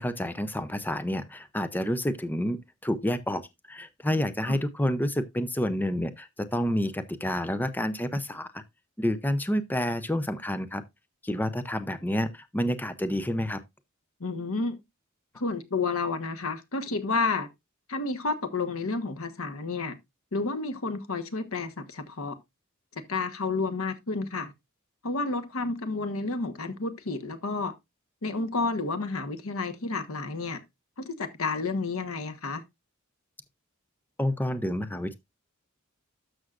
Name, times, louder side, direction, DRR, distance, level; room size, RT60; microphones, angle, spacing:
voice 1, 0.0-8.6 9.0-10.8 11.2-13.6 34.2-35.1, left 1 dB, 10° left, 0.6 m, -29 dB
voice 2, 14.2-14.7 15.4-17.5 17.9-20.0 20.3-22.4 23.1-24.5 25.0-27.7 28.2-30.6 31.0-32.6, left 3 dB, 85° left, 1.2 m, -30 dB
12.5 x 6.3 x 2.4 m
head